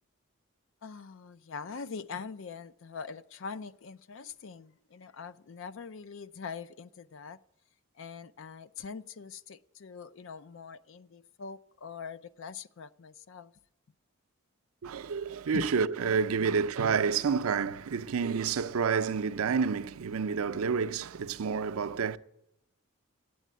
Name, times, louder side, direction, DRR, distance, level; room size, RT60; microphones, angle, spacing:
voice 1, 0.8-7.4 8.0-13.5 15.5-15.7 16.4-16.5, left 5 dB, 65° left, 0.4 m, -43 dB
voice 2, 14.8-22.2, right 6 dB, 90° right, 0.5 m, -29 dB
8.6 x 8.2 x 9.1 m
head